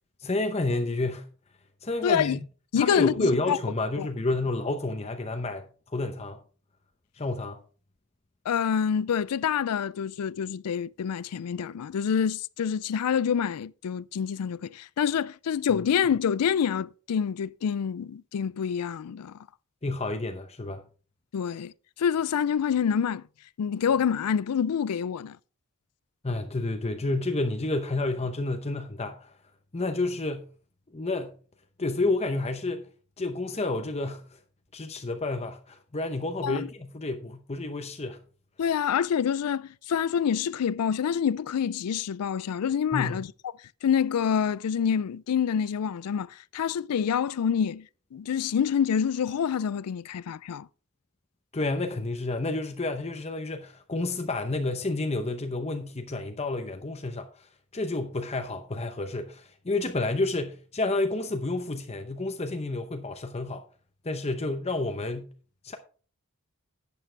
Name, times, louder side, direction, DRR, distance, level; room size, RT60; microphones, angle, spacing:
voice 1, 0.2-1.2 1.8-2.4 2.8-5.6 5.9-6.4 7.2-7.6 19.8-20.8 26.2-29.3 29.7-30.5 30.9-31.3 31.8-32.9 33.2-34.4 34.7-38.2 42.9-43.2 51.5-57.5 57.7-63.6 64.0-65.3 65.6-65.8, left 2 dB, 30° left, 0.8 m, -30 dB
voice 2, 2.0-2.4 2.7-3.6 4.0-4.1 8.5-19.4 21.3-21.7 22.0-23.2 23.6-25.4 36.4-36.7 38.6-43.3 43.8-47.9 48.1-50.7, left 7 dB, 90° left, 0.4 m, -27 dB
11.0 x 8.4 x 3.3 m
head